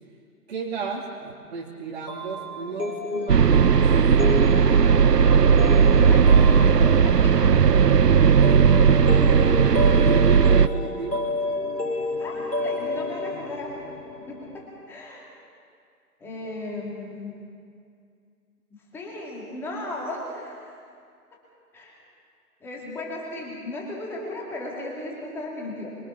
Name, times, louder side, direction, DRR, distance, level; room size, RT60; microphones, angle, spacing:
voice 1, 0.5-3.9 8.9-11.3, right 4 dB, 40° right, -3 dB, 2.8 m, -34 dB
sound 1, 2.1-14.7, left 2 dB, 85° left, 4.3 m, -31 dB
sound 2, 3.3-10.7, right 6 dB, 85° right, 0.8 m, -16 dB
voice 2, 6.1-7.6 11.9-13.7 14.1-15.3 16.2-17.3 18.9-20.6 21.7-22.0 22.6-25.9, left 2 dB, 5° left, -3 dB, 2.6 m, -35 dB
26.0 x 23.0 x 5.7 m, 2.3 s
figure-of-eight pair, 150°, 47 cm